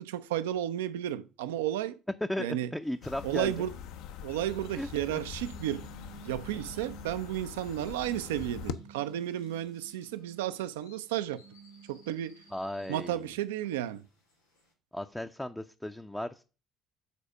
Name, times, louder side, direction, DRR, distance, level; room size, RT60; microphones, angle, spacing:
voice 1, 0.0-2.0 2.4-2.7 3.2-3.7 4.2-5.9 6.2-11.4 11.9-12.4 12.9-14.1, right 12 dB, 70° right, 0.5 m, -33 dB
voice 2, 2.3-3.6 4.8-5.2 12.5-13.2 14.9-16.4, left 1 dB, 5° left, 0.5 m, -36 dB
sound 1, 2.8-14.7, left 2 dB, 85° left, 3.0 m, -65 dB
sound 2, 3.0-8.7, left 8 dB, 60° left, 0.6 m, -43 dB
sound 3, 5.3-7.4 8.0-10.7 11.2-13.5, right 9 dB, 40° right, 0.9 m, -54 dB
6.8 x 4.2 x 6.2 m
figure-of-eight pair, 55°, 0 cm